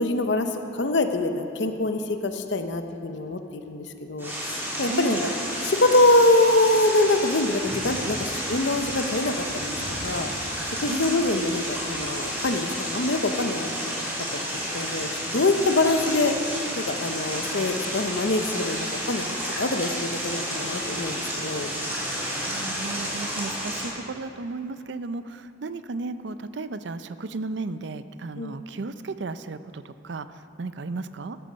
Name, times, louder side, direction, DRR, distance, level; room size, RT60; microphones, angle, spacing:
voice 1, 0.0-5.3 5.6-9.8 10.0-10.3 10.8-13.9 14.3-14.4 14.7-16.4 16.8-19.2 19.6-21.7 28.4-28.5, left 2 dB, 65° left, 7 dB, 0.8 m, -24 dB
sound 1, 4.2-23.9, equal, 10° right, 3.5 m, -31 dB
voice 2, 4.9-5.3 10.9-11.3 22.4-30.3 30.6-31.4, right 3 dB, 65° right, 12 dB, 0.5 m, -34 dB
14.0 x 12.0 x 5.2 m, 2.8 s
head